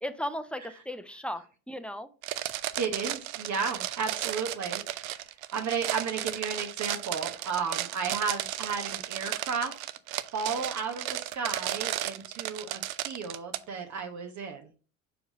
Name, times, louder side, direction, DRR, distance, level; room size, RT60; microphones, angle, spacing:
voice 1, 0.0-2.1, equal, 5° left, 10 dB, 0.7 m, -36 dB
sound 1, 2.2-13.6, right 14 dB, 70° right, 0.6 m, -34 dB
voice 2, 2.8-9.7 10.3-14.7, right 5 dB, 40° right, 4 dB, 1.1 m, -33 dB
5.1 x 4.7 x 5.3 m, 0.36 s
hypercardioid pair, 65°, 44 cm